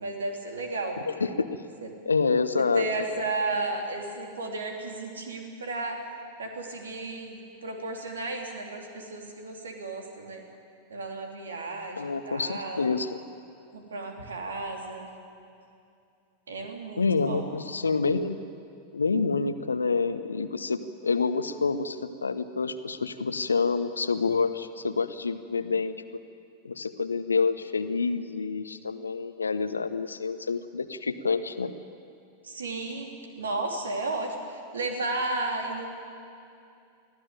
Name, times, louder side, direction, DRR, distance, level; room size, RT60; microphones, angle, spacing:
voice 1, 0.0-1.0 1.8-1.9 2.6-6.0 6.4-10.4 10.9-12.9 13.7-15.1 16.5-17.5 32.4-35.9, right 2 dB, 70° right, 3 dB, 3.3 m, -33 dB
voice 2, 1.1-1.6 2.0-2.8 12.0-13.2 17.0-18.4 18.9-25.9 26.6-31.7, left 4 dB, 75° left, 12 dB, 1.0 m, -27 dB
23.5 x 15.5 x 9.1 m, 2.6 s
figure-of-eight pair, 90°, 0 cm